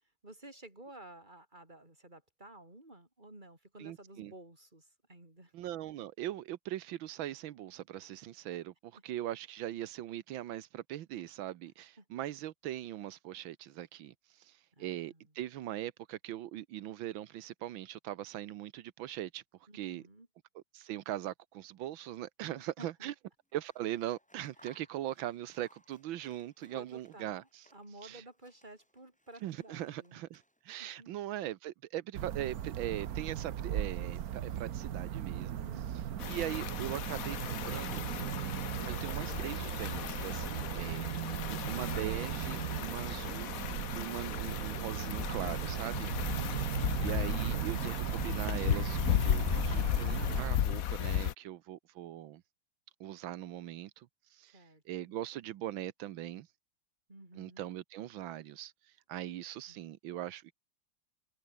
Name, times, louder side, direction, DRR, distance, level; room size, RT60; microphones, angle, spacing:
voice 1, 0.2-5.5 12.0-12.1 14.7-15.3 19.7-20.3 22.4-23.1 26.6-30.2 30.8-31.1 35.6-36.2 41.0-41.4 46.3-46.9 54.5-55.1 57.1-57.7 59.7-59.8, right 1 dB, 20° right, 5.2 m, -53 dB
voice 2, 3.8-4.3 5.5-19.4 19.7-20.0 20.5-23.1 23.5-27.7 28.0-28.2 29.4-35.6 36.3-38.0 38.9-46.1 47.0-52.4 53.0-56.5 57.3-60.5, right 13 dB, 90° right, 1.6 m, -41 dB
Scissors, 23.5-28.0 28.3-30.9, equal, 5° left, 6.6 m, -66 dB
sound 1, 32.1-50.5, right 10 dB, 55° right, 1.3 m, -37 dB
sound 2, 36.2-51.3, left 10 dB, 55° left, 1.1 m, -35 dB
omnidirectional pair, 2.1 m